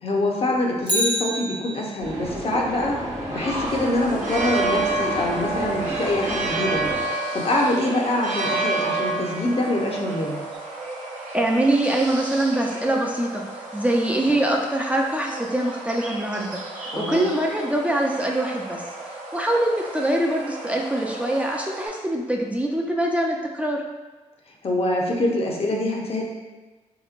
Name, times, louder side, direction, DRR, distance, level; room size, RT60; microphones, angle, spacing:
voice 1, 0.0-3.0 3.3-6.9 7.3-10.4 16.9-17.3 24.6-26.2, left 1 dB, 50° left, -1 dB, 0.6 m, -24 dB
Bicycle, 0.8-2.2 10.5-10.6, equal, 35° right, 0.8 m, -27 dB
sound 1, 2.0-7.0, right 1 dB, 60° right, 1.0 m, -31 dB
sound 2, 3.7-21.9, right 3 dB, 75° right, 0.6 m, -31 dB
voice 2, 11.3-18.8 19.3-23.8, right 1 dB, 10° right, -1 dB, 0.4 m, -24 dB
3.5 x 2.9 x 2.4 m, 1.2 s
cardioid pair, 75°, 13 cm